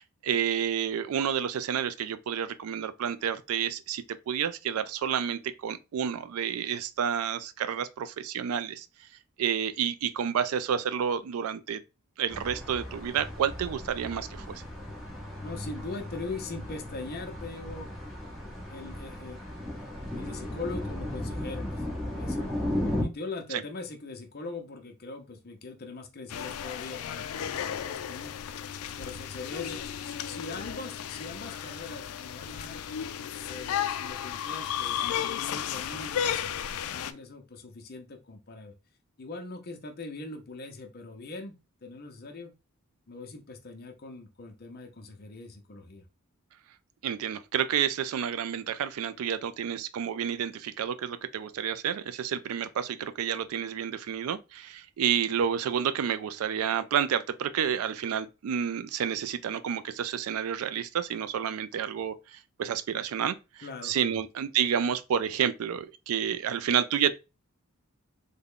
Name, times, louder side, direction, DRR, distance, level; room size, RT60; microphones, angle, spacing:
voice 1, 0.0-8.9 9.4-11.8 12.2-14.6 23.5-23.6 47.0-67.1, right 8 dB, 75° right, 0.3 m, -30 dB
sound 1, 12.3-23.0, left 1 dB, ahead, 0.9 m, -36 dB
voice 2, 15.4-17.9 18.7-19.4 20.2-21.9 22.1-22.5 23.0-28.4 29.0-32.9 33.4-36.6 36.9-38.7 39.2-42.5 43.1-46.1 63.6-64.2, left 3 dB, 45° left, 0.7 m, -41 dB
sound 2, 26.3-37.1, left 9 dB, 80° left, 0.3 m, -34 dB
3.6 x 2.2 x 3.6 m
head